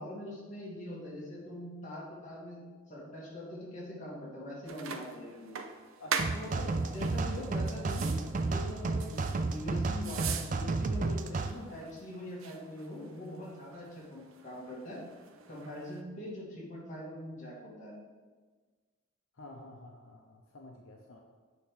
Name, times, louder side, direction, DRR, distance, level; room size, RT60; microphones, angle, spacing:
voice 1, 0.0-2.6 2.9-5.5 6.3-15.0 15.5-17.9, left 1 dB, 35° left, -6 dB, 2.4 m, -43 dB
sound 1, 4.7-16.0, right 6 dB, 75° right, 0.6 m, -43 dB
voice 2, 6.0-8.3 19.3-21.2, left 1 dB, 75° left, 0 dB, 0.8 m, -51 dB
sound 2, 6.2-11.5, right 3 dB, 40° right, 0.4 m, -32 dB
8.4 x 3.7 x 6.6 m, 1.4 s
head